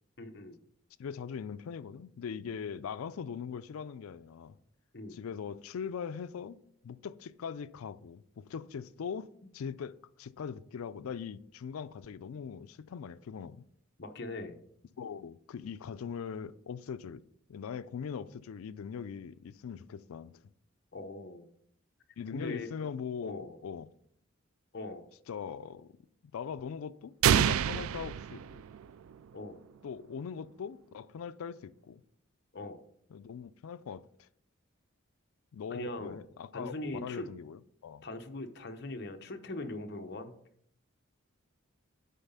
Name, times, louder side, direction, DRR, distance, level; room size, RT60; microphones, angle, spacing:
voice 1, 0.2-0.6 4.9-5.2 14.0-14.6 20.9-21.5 22.3-22.7 23.2-23.6 24.7-25.1 29.3-29.6 32.5-32.8 35.7-36.2 36.5-37.3 38.0-40.3, left 2 dB, 50° left, 0.8 m, -40 dB
voice 2, 1.0-4.6 5.1-6.6 6.8-13.6 15.0-17.2 17.5-20.4 22.2-23.9 25.3-25.9 26.3-28.6 29.8-32.0 33.1-34.3 35.5-38.0, left 6 dB, 85° left, 0.4 m, -41 dB
sound 1, 27.2-29.1, right 9 dB, 80° right, 0.3 m, -27 dB
9.2 x 4.0 x 5.5 m
head